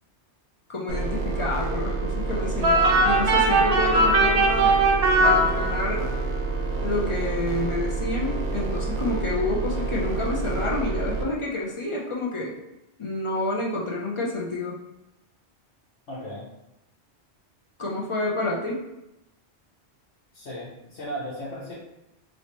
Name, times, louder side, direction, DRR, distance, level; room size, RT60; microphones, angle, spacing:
voice 1, 0.7-4.8 5.2-6.1 6.8-12.5 13.0-14.8 17.8-18.9, left 2 dB, 55° left, -3 dB, 0.3 m, -29 dB
sound 1, 0.9-11.2, right 3 dB, 90° right, 0.9 m, -28 dB
sound 2, 2.6-6.1, right 2 dB, 50° right, 0.5 m, -20 dB
voice 2, 16.1-16.4 20.3-21.7, equal, 85° left, -8 dB, 1.2 m, -35 dB
3.0 x 3.0 x 2.9 m, 0.91 s
omnidirectional pair, 1.1 m